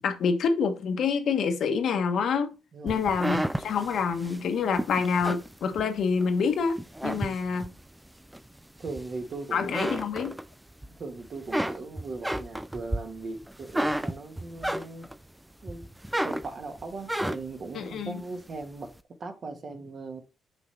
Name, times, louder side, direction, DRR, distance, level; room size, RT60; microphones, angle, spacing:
voice 1, 0.0-2.5 2.8-7.7 9.5-10.4 17.7-18.2, left 5 dB, 65° left, 1.1 m, -27 dB
voice 2, 2.7-3.0 7.1-7.4 8.8-9.7 11.0-15.1 15.6-15.9 16.2-18.9 19.2-20.2, right 3 dB, 45° right, 1.4 m, -39 dB
sound 1, 2.9-6.3 6.7-7.8 8.3-9.3 9.6-10.9 11.2-15.2 15.7-17.6, right 1 dB, 5° right, 0.4 m, -32 dB
6.1 x 5.4 x 3.3 m
cardioid pair, 90°, 0 cm